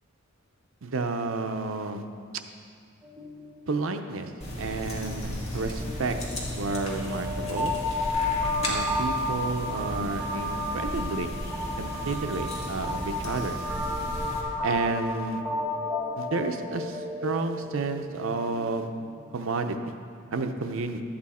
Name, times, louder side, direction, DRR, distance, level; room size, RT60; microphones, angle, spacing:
voice 1, 0.8-2.0 3.7-4.3 4.6-6.2 6.5-7.7 8.6-11.3 11.8-13.6 14.6-15.4 16.2-18.9 19.3-19.9 20.3-21.0, right 3 dB, 70° right, 7 dB, 0.6 m, -31 dB
sound 1, 3.0-4.2 4.5-4.7 4.9-19.3, left 1 dB, 10° right, 1.4 m, -33 dB
sound 2, 4.4-14.4, left 1 dB, 30° left, 1.8 m, -35 dB
12.5 x 8.7 x 4.2 m, 2.3 s
head